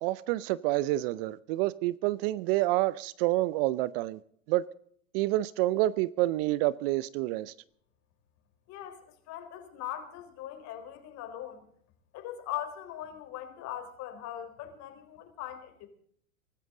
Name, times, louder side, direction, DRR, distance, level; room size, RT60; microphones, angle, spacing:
voice 1, 0.0-4.2 4.5-4.6 5.1-7.5, right 17 dB, 45° right, 0.7 m, -28 dB
voice 2, 8.7-11.6 12.1-15.9, left 11 dB, 40° left, 4.2 m, -40 dB
24.0 x 13.5 x 3.8 m
hypercardioid pair, 110°, 40 cm